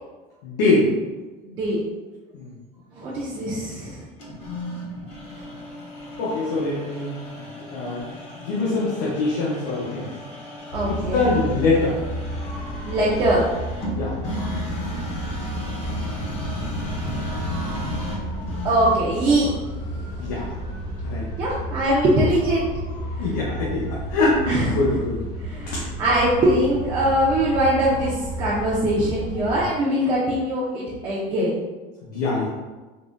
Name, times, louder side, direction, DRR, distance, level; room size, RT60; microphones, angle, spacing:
voice 1, 0.4-0.9 2.3-2.5 6.2-7.1 7.7-8.0 8.4-10.1 10.8-12.0 13.9-14.1 20.2-20.4 21.0-21.2 23.2-23.8 24.1-25.2 25.7-25.8 32.0-32.5, left 3 dB, 75° left, -6 dB, 0.7 m, -23 dB
voice 2, 1.4-1.8 2.9-4.0 10.7-11.3 12.8-13.5 18.6-19.5 20.1-20.3 21.4-22.7 23.2-23.4 24.4-25.0 25.4-31.5, right 1 dB, 20° right, -8 dB, 0.3 m, -22 dB
sound 1, 4.2-19.2, left 1 dB, 30° left, 0.5 m, -34 dB
sound 2, 10.7-29.7, equal, 50° left, 1.0 m, -32 dB
3.6 x 2.0 x 2.4 m, 1.2 s
cardioid pair, 175°, 21 cm